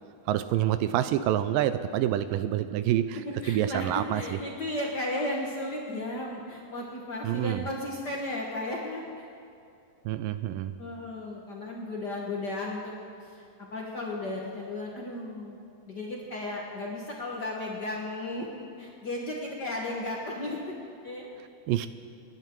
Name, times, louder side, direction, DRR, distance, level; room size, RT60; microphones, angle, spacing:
voice 1, 0.3-3.2 3.5-4.4 7.2-7.6 10.1-10.7 21.7-21.9, right 12 dB, 80° right, 12 dB, 2.1 m, -27 dB
voice 2, 3.4-9.3 10.8-12.9 13.2-15.6 15.9-20.8 21.0-21.3, left 1 dB, 65° left, -2 dB, 1.0 m, -35 dB
26.0 x 11.0 x 4.6 m, 2.5 s
omnidirectional pair, 4.1 m